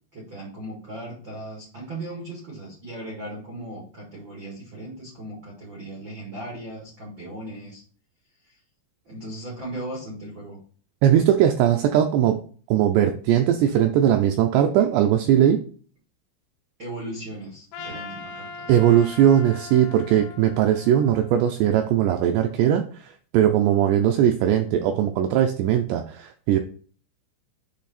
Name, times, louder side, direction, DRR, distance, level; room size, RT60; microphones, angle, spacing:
voice 1, 0.1-7.8 8.4-8.6 9.0-10.6 16.8-18.8 24.7-25.0, right 1 dB, 60° right, -4 dB, 1.2 m, -37 dB
voice 2, 11.0-12.4 12.7-15.6 18.7-26.6, right 10 dB, 90° right, 5 dB, 2.4 m, -19 dB
Trumpet, 17.7-22.0, left 4 dB, 80° left, 3.0 m, -40 dB
8.5 x 3.3 x 4.1 m, 0.43 s
omnidirectional pair, 5.5 m